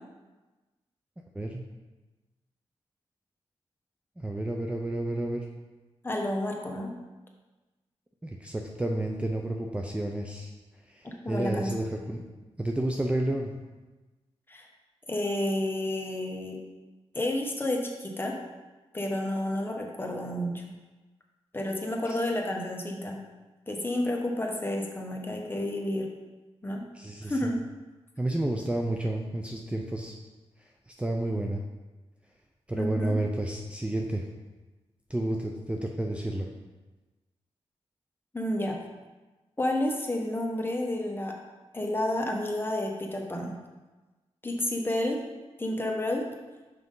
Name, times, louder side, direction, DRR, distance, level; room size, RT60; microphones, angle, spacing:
voice 1, 4.2-5.5 8.2-10.5 10.9-12.2 12.6-13.5 22.1-22.2 26.9-27.5 28.2-30.2 30.9-31.6 32.7-34.2 35.1-36.5, right 1 dB, 10° right, 1 dB, 0.5 m, -31 dB
voice 2, 6.0-6.9 11.0-11.7 14.5-14.7 15.1-16.6 17.1-18.3 18.9-20.6 21.5-23.2 23.7-26.1 26.6-26.8 27.2-27.6 32.7-33.2 38.3-38.8 39.6-41.4 41.7-43.6 44.4-45.2 45.6-46.2, left 1 dB, 20° left, 0 dB, 1.1 m, -30 dB
5.8 x 5.2 x 3.8 m, 1.2 s
cardioid pair, 70°, 11 cm